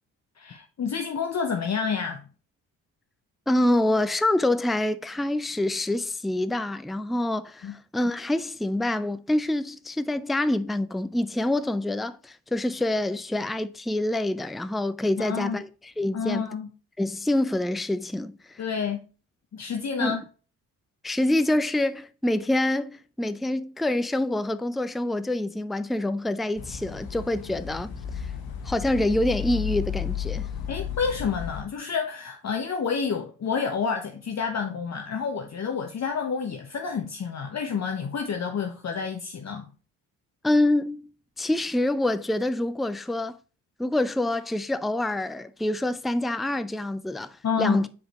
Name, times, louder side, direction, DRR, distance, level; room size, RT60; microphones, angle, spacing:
voice 1, 0.4-2.2 7.6-7.7 15.2-15.6 16.1-16.7 18.6-19.0 19.5-20.2 30.7-39.7 47.4-47.9, left 6 dB, 40° left, 0.9 m, -29 dB
voice 2, 3.5-16.5 17.0-18.6 20.0-20.2 21.0-28.3 28.6-30.5 40.4-41.1 41.4-43.4 43.8-47.9, left 1 dB, ahead, 0.4 m, -26 dB
sound 1, 26.6-31.6, left 8 dB, 60° left, 1.2 m, -33 dB
7.0 x 5.0 x 2.9 m
hypercardioid pair, 45°, 42 cm